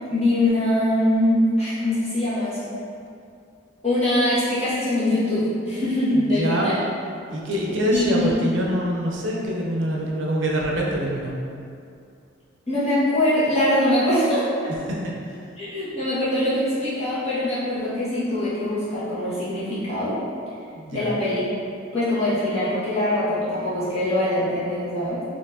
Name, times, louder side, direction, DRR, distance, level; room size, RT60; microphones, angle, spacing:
voice 1, 0.1-2.7 3.8-6.7 7.9-8.3 12.7-14.7 15.6-20.2 20.9-21.4 21.9-25.2, left 1 dB, 35° left, -12 dB, 1.3 m, -23 dB
voice 2, 6.1-6.8 7.3-11.3 14.8-15.0 15.2-15.4 20.7-21.2, equal, 65° right, -2 dB, 0.6 m, -25 dB
4.4 x 3.0 x 2.6 m, 2.4 s
head